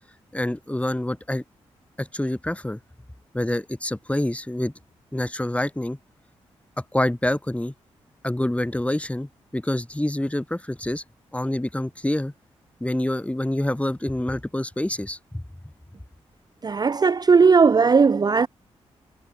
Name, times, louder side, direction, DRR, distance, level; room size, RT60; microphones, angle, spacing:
voice 1, 0.3-1.4 2.0-2.8 3.3-4.7 5.1-6.0 6.9-7.7 8.2-11.0 11.3-12.3 12.8-15.4, left 1 dB, 10° left, 3.9 m, -26 dB
voice 2, 16.6-18.5, right 5 dB, 35° right, 0.5 m, -17 dB
supercardioid pair, 50°, 12 cm